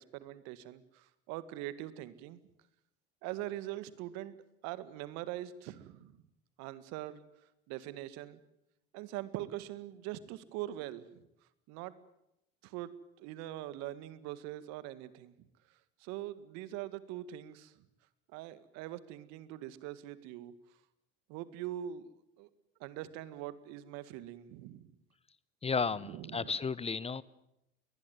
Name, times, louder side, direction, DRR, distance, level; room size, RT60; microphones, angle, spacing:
voice 1, 0.0-2.4 3.2-4.4 4.6-6.2 6.6-7.2 7.7-8.4 8.9-11.3 11.7-11.9 12.6-15.3 16.0-17.8 18.3-20.5 21.3-22.5 22.8-24.8 26.0-26.5, right 13 dB, 65° right, 15 dB, 1.8 m, -42 dB
voice 2, 25.6-27.2, left 5 dB, 20° left, 20 dB, 0.9 m, -33 dB
22.0 x 20.0 x 9.4 m, 0.83 s
hypercardioid pair, 70°, 29 cm